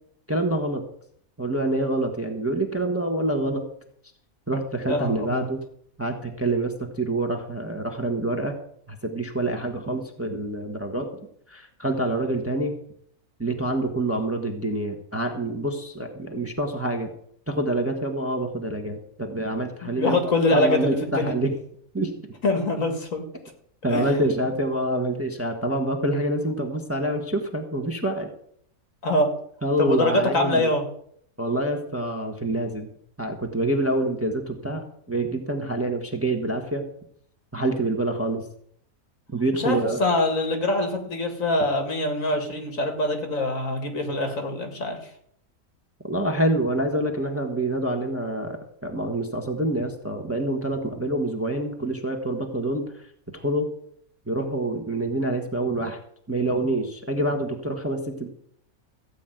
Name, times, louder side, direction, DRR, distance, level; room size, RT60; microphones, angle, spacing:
voice 1, 0.3-0.8 1.4-3.6 4.5-5.6 6.0-8.6 8.9-11.1 11.5-12.7 13.4-17.1 17.5-21.5 21.9-22.1 23.8-28.3 29.6-30.7 31.4-32.9 33.2-36.8 37.5-38.4 39.3-40.0 46.1-48.6 48.8-52.8 53.3-53.7 54.3-56.0 56.3-58.3, right 1 dB, 10° right, 3 dB, 1.3 m, -26 dB
voice 2, 4.9-5.5 19.8-21.3 22.4-23.3 23.9-24.1 29.0-29.3 29.8-30.8 39.5-45.0, left 2 dB, 60° left, 4 dB, 2.3 m, -24 dB
14.5 x 5.2 x 9.1 m, 0.67 s
omnidirectional pair, 1.5 m